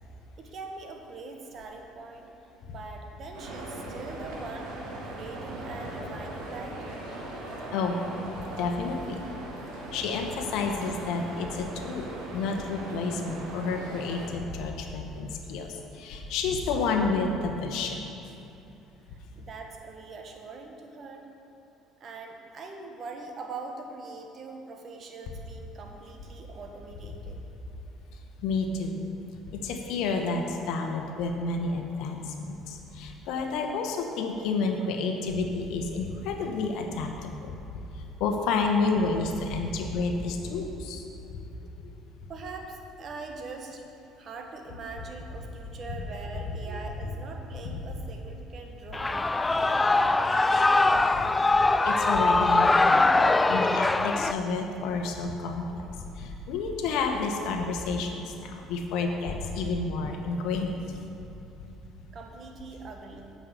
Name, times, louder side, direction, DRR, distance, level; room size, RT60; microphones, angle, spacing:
voice 1, 0.4-2.3 2.7-7.0 19.1-21.3 22.0-27.4 42.3-43.8 44.2-49.2 49.6-50.9 62.1-63.3, right 3 dB, 50° right, 2 dB, 1.3 m, -42 dB
sound 1, 3.3-14.3, right 1 dB, 75° right, 1.5 m, -39 dB
voice 2, 8.5-9.2 9.9-12.1 12.3-18.1 28.4-29.1 29.5-37.6 38.0-41.0 41.3-41.4 46.7-46.8 47.6-47.8 51.8-55.9 56.2-60.8, left 4 dB, 70° left, 4 dB, 1.0 m, -30 dB
Shout / Cheering, 48.9-54.3, left 2 dB, 20° left, 0.3 m, -22 dB
8.9 x 5.5 x 6.5 m, 2.8 s
hypercardioid pair, 65°, 0 cm